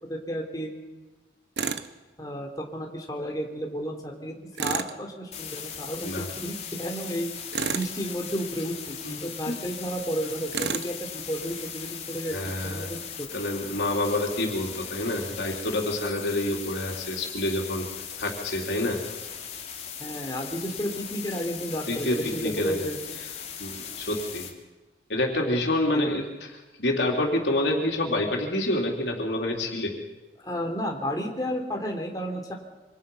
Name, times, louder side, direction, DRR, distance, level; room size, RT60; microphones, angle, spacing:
voice 1, 0.1-0.7 2.2-7.3 7.7-12.4 12.6-13.3 20.0-23.2 25.9-26.1 30.4-32.5, equal, 20° left, 1 dB, 3.5 m, -32 dB
Tools, 1.6-1.9 4.6-5.0 7.5-8.0 10.5-10.9, right 5 dB, 80° right, 1.1 m, -29 dB
sound 1, 5.3-24.5, left 8 dB, 40° left, 2.8 m, -39 dB
voice 2, 12.3-12.9 13.3-17.9 18.2-19.0 21.9-22.9 23.6-24.5 25.1-29.9, left 1 dB, 85° left, 0 dB, 3.7 m, -28 dB
27.0 x 25.5 x 5.7 m, 1.2 s
head